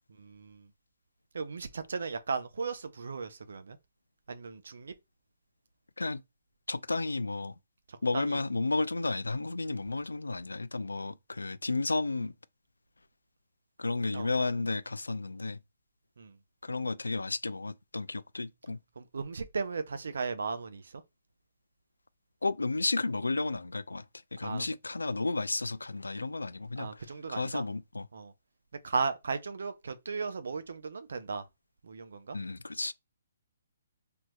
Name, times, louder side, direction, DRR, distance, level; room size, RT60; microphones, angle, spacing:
voice 1, 0.2-0.7 1.3-3.8 4.3-4.9 7.9-8.4 14.1-14.3 16.2-16.4 19.0-21.0 24.4-24.7 26.8-27.6 28.1-28.3 28.8-31.4 31.8-32.4, right 4 dB, 65° right, 0.5 m, -36 dB
voice 2, 6.7-7.6 8.0-12.3 13.8-15.6 16.6-18.8 22.4-24.1 24.3-28.1 32.3-32.9, left 3 dB, 80° left, 0.3 m, -32 dB
3.3 x 2.8 x 2.2 m
figure-of-eight pair, 130°, 0 cm